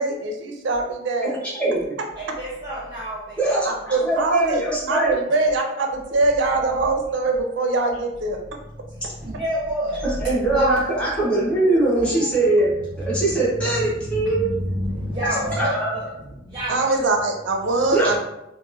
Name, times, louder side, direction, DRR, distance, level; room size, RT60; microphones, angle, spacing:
voice 1, 0.0-1.4 3.9-4.6 4.9-8.4 11.6-12.4 16.7-18.2, right 2 dB, 65° right, 3 dB, 0.5 m, -23 dB
voice 2, 1.4-1.9 3.4-5.2 10.2-12.7 13.0-14.5 15.6-15.9 17.9-18.2, right 2 dB, 5° left, -8 dB, 0.8 m, -22 dB
voice 3, 2.2-3.6 3.9-4.1 4.6-4.7 8.8-11.0 12.1-17.0, equal, 20° right, -8 dB, 0.6 m, -29 dB
3.0 x 2.1 x 2.4 m, 0.88 s
head